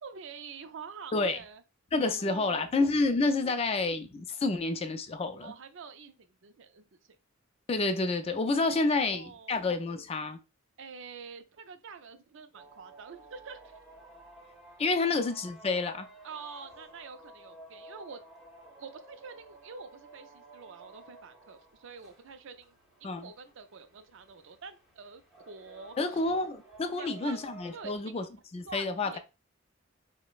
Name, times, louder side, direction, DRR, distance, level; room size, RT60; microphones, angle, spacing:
voice 1, 0.0-1.6 2.2-2.7 3.4-3.6 5.4-6.8 8.6-9.6 10.8-13.8 15.0-15.1 16.2-18.2 18.8-22.8 23.0-26.4 27.0-28.3 28.7-29.2, right 5 dB, 65° right, 0.4 m, -46 dB
voice 2, 1.9-5.5 7.7-10.4 14.8-16.1 23.0-23.3 26.0-28.2 28.5-29.2, left 3 dB, 30° left, 0.4 m, -29 dB
sound 1, 12.6-28.0, right 2 dB, ahead, 1.0 m, -54 dB
4.9 x 2.1 x 2.3 m
head